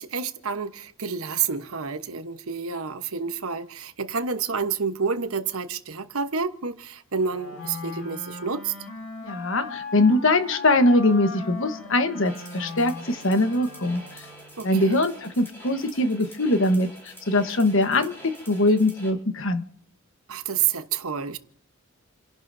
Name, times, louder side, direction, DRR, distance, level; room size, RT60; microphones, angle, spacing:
voice 1, 0.0-8.7 14.6-15.0 20.3-21.4, right 6 dB, 85° right, 1.1 m, -29 dB
Wind instrument woodwind instrument, 7.1-14.6, left 3 dB, 80° left, 4.4 m, -38 dB
voice 2, 9.2-14.0 14.6-19.6, left 2 dB, 60° left, 1.3 m, -22 dB
sound 1, 12.2-19.1, equal, 10° left, 4.8 m, -46 dB
29.5 x 11.5 x 2.7 m
head